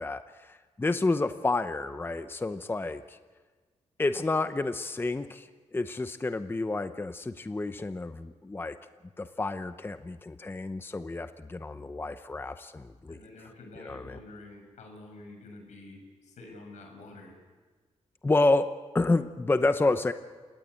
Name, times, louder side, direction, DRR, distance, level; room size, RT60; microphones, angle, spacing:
voice 1, 0.0-3.2 4.0-8.8 9.2-13.2 13.8-14.2 18.2-20.1, left 2 dB, 20° left, 10 dB, 0.8 m, -29 dB
voice 2, 13.1-17.3, left 2 dB, 85° left, 2 dB, 7.0 m, -48 dB
28.5 x 18.0 x 8.2 m, 1.4 s
cardioid pair, 100°, 12 cm